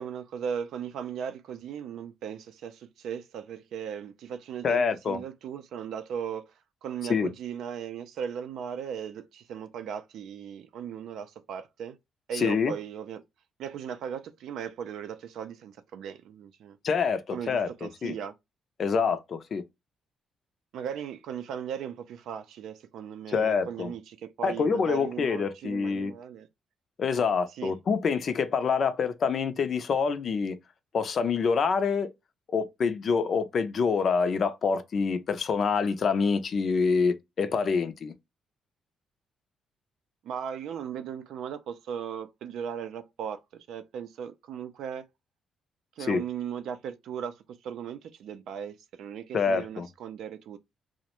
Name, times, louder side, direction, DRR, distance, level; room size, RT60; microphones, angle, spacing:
voice 1, 0.0-6.4 6.8-12.0 12.3-13.2 13.6-16.8 17.3-18.3 20.7-26.5 27.6-27.8 40.2-45.0 46.0-50.6, right 8 dB, 80° right, 0.4 m, -37 dB
voice 2, 4.6-5.2 7.1-7.3 12.3-12.7 16.8-18.1 18.8-19.6 23.3-23.9 24.4-26.1 27.0-30.6 30.9-32.1 32.5-38.1 46.1-46.2 49.3-49.9, left 5 dB, 50° left, 0.4 m, -26 dB
2.3 x 2.1 x 2.9 m
cardioid pair, 90°, 0 cm